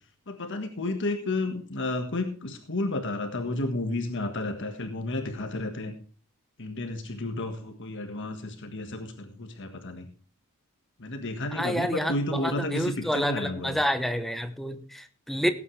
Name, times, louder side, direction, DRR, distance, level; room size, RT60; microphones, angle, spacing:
voice 1, 0.3-5.9 6.6-10.1 11.0-13.8 15.3-15.4, left 2 dB, 55° left, 6 dB, 1.6 m, -32 dB
voice 2, 11.5-15.5, equal, ahead, 9 dB, 0.9 m, -29 dB
17.5 x 8.9 x 3.3 m, 0.40 s
head